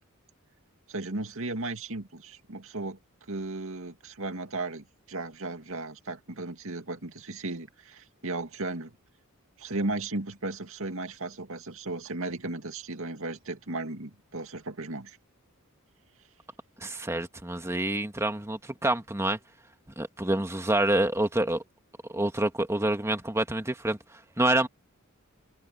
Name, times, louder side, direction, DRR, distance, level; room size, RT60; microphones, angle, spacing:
voice 1, 0.9-3.0 3.3-8.9 9.6-15.2, right 2 dB, 70° right, 2.4 m, -35 dB
voice 2, 16.8-19.4 20.0-21.6 22.1-24.0 24.4-24.7, right 1 dB, 15° right, 1.8 m, -27 dB
head